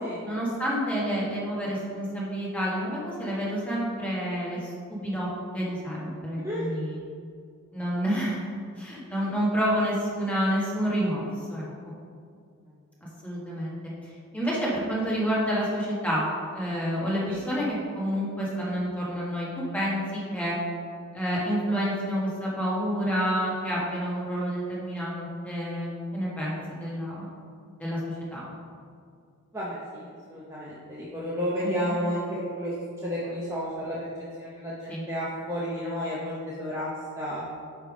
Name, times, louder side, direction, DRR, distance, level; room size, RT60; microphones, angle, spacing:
voice 1, 0.2-5.3 5.5-7.0 7.7-8.5 8.7-11.6 13.2-13.8 14.3-16.2 16.5-20.6 21.1-27.3 27.8-28.4 31.6-31.9 34.9-35.1, equal, 5° left, -7 dB, 1.6 m, -29 dB
voice 2, 29.5-32.7 33.0-34.1 34.4-36.9 37.2-37.4, equal, 15° right, -7 dB, 0.7 m, -32 dB
8.8 x 3.5 x 5.1 m, 2.2 s
head